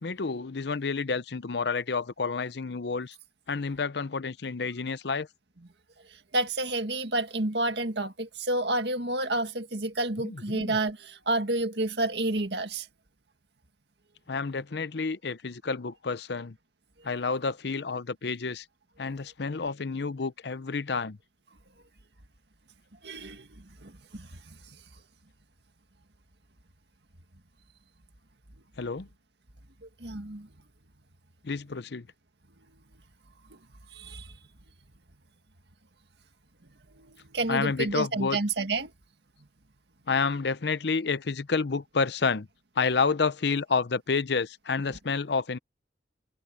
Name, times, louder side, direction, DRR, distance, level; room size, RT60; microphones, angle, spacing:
voice 1, 0.0-3.2 3.5-5.3 10.2-10.8 14.3-16.6 17.0-18.7 19.0-21.2 28.8-29.1 31.4-32.1 37.5-38.4 40.1-42.5 42.8-45.6, left 4 dB, 65° left, 0.7 m, -29 dB
voice 2, 6.3-12.9 23.0-24.6 30.0-30.5 33.5-33.6 33.9-34.4 37.0-38.9, right 2 dB, 65° right, 2.0 m, -30 dB
head